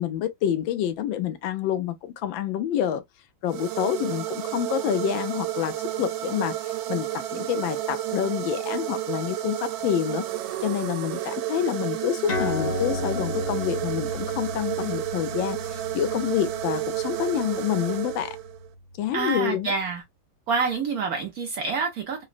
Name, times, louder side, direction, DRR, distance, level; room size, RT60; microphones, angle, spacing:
voice 1, 0.0-3.0 3.4-7.1 7.3-10.2 10.6-18.4 19.0-19.7, left 10 dB, 80° left, 1.3 m, -27 dB
sound 1, 3.5-18.7, right 13 dB, 90° right, 1.4 m, -31 dB
sound 2, 12.3-19.2, left 2 dB, 55° left, 0.6 m, -34 dB
voice 2, 19.1-20.0 20.5-22.2, right 5 dB, 65° right, 0.9 m, -27 dB
3.9 x 2.1 x 2.4 m
omnidirectional pair, 2.1 m